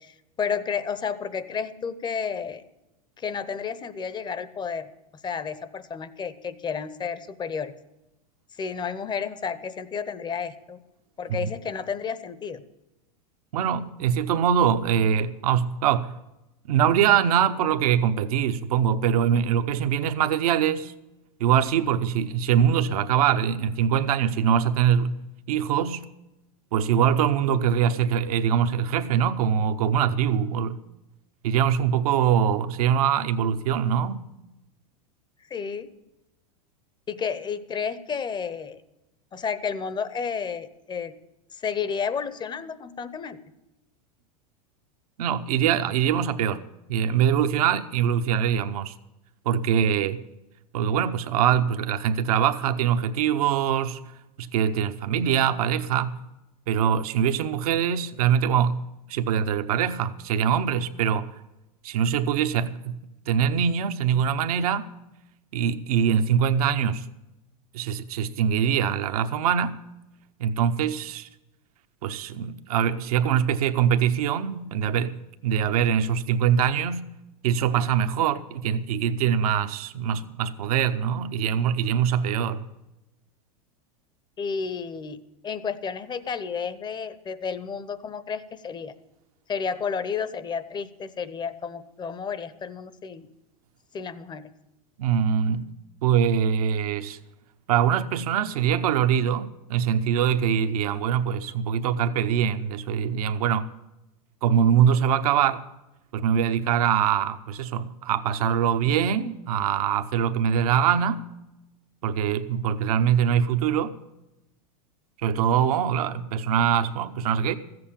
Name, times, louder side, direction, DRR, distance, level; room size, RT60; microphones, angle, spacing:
voice 1, 0.0-2.6 3.2-4.9 5.2-7.7 8.6-10.8 11.2-12.6 35.5-35.9 37.1-38.8 39.3-41.1 41.5-43.4 84.4-85.2 85.4-88.9 89.5-93.3 93.9-94.5, left 6 dB, 25° left, 0.9 m, -31 dB
voice 2, 13.5-16.2 16.7-20.9 21.4-26.0 26.7-30.8 31.4-34.3 45.2-46.6 46.9-48.9 49.4-50.2 50.7-54.1 54.4-56.2 56.7-61.3 61.8-63.0 63.3-64.9 65.5-67.1 67.7-69.8 70.4-71.3 72.0-77.1 77.4-82.7 95.0-95.7 96.0-97.2 97.7-103.7 104.4-105.6 106.1-111.3 112.0-114.0 115.2-117.5, right 8 dB, 75° right, 0.9 m, -23 dB
14.0 x 7.9 x 8.7 m
hypercardioid pair, 110°, 19 cm